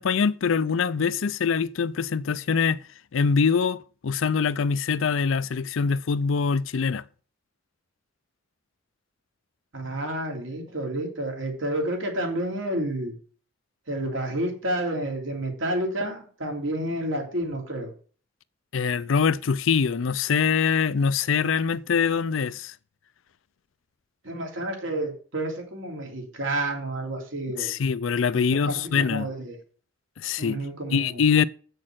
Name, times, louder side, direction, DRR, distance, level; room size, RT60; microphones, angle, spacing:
voice 1, 0.0-2.8 3.1-7.0 18.7-22.7 27.6-29.3 30.2-30.6 30.9-31.4, left 6 dB, 80° left, 0.5 m, -24 dB
voice 2, 9.7-13.2 13.9-17.9 24.2-27.7 28.5-29.6 30.4-31.2, right 1 dB, 75° right, 3.1 m, -30 dB
7.5 x 6.4 x 7.6 m
head